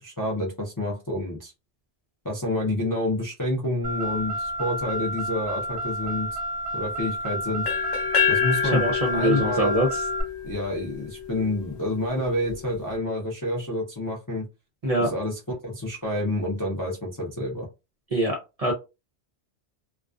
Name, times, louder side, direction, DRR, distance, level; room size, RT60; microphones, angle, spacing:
voice 1, 0.0-1.5 2.2-6.4 6.7-7.7 8.3-8.9 9.1-9.7 10.4-14.5 15.0-17.7, left 1 dB, 30° left, -3 dB, 0.4 m, -28 dB
Car, 3.8-10.2, right 1 dB, 10° right, 0.8 m, -30 dB
sound 1, 7.7-11.5, left 7 dB, 60° left, 0.8 m, -27 dB
voice 2, 8.6-10.0 14.8-15.1 18.1-18.7, equal, 45° right, 0 dB, 0.5 m, -24 dB
2.4 x 2.3 x 2.3 m, 0.27 s
omnidirectional pair, 1.2 m